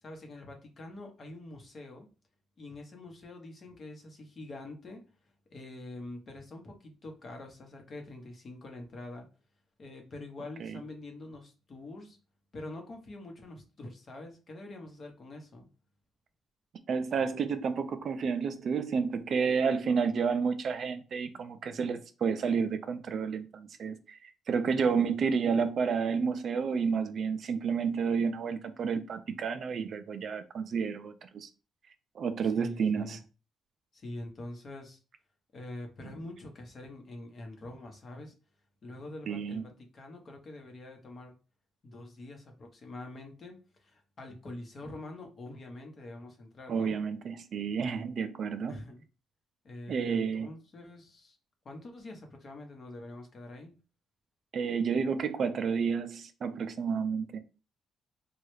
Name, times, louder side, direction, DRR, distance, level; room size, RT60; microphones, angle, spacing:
voice 1, 0.0-2.1 2.6-5.0 5.5-9.3 9.8-12.2 12.5-15.7 32.4-33.2 33.9-35.0 35.5-38.3 38.8-41.3 41.8-47.0 48.7-49.0 49.6-51.4 51.6-53.7, left 2 dB, 45° left, 0.9 m, -45 dB
voice 2, 16.9-31.5 32.2-33.2 39.3-39.6 46.7-48.8 49.9-50.5 54.5-57.4, right 6 dB, 55° right, 0.4 m, -30 dB
3.1 x 2.3 x 3.1 m
cardioid pair, 105°, 0 cm